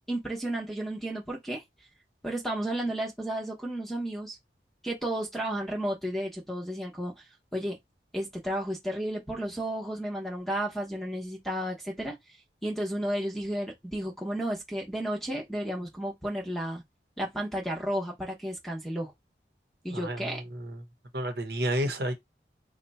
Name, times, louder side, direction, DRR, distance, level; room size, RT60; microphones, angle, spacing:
voice 1, 0.1-1.6 2.2-4.4 4.8-7.1 7.5-7.8 8.1-12.2 12.6-16.8 17.2-19.1 19.8-20.4, right 1 dB, ahead, 0.9 m, -32 dB
voice 2, 19.9-20.8 21.1-22.1, right 1 dB, 65° right, 0.9 m, -31 dB
2.9 x 2.2 x 4.0 m
head